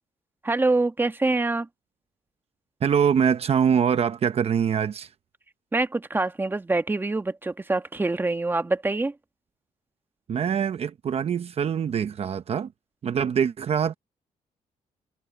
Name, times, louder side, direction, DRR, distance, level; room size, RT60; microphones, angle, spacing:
voice 1, 0.4-1.7 5.7-9.1, right 2 dB, 15° right, 1.4 m, -25 dB
voice 2, 2.8-5.1 10.3-12.7 13.0-13.9, right 7 dB, 50° right, 0.9 m, -24 dB
cardioid pair, 110°, 13 cm